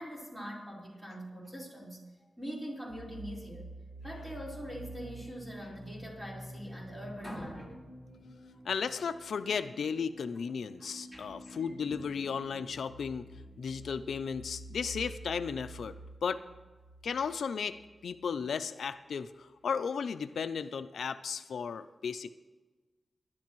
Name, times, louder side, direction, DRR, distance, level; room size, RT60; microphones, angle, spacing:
voice 1, 0.0-2.0 2.4-3.7 4.0-7.8 8.5-8.7 10.8-12.0, equal, 15° right, -4 dB, 4.3 m, -43 dB
sound 1, 2.9-18.4, right 1 dB, 50° right, 1.9 m, -49 dB
voice 2, 8.7-13.2 13.6-16.4 17.0-17.8 18.0-22.3, left 6 dB, 90° left, 11 dB, 0.4 m, -35 dB
19.5 x 11.0 x 3.1 m, 1.3 s
wide cardioid pair, 110°, 0 cm